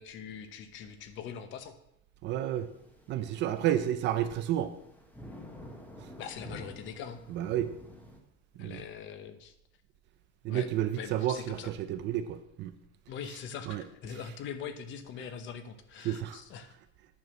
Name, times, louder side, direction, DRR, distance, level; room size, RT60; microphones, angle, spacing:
voice 1, 0.0-1.7 3.6-3.7 6.2-7.2 8.6-9.5 10.5-10.7 11.0-11.7 13.1-16.7, left 7 dB, 35° left, 10 dB, 0.8 m, -42 dB
voice 2, 2.2-2.7 3.1-4.7 6.0-6.1 7.3-7.7 8.6-8.8 10.4-12.7 13.6-13.8 14.1-14.2 16.0-16.4, right 11 dB, 35° right, 10 dB, 0.5 m, -31 dB
sound 1, 2.5-8.2, equal, 5° left, 0.9 m, -49 dB
9.6 x 6.1 x 6.1 m, 0.77 s
cardioid pair, 170°, 32 cm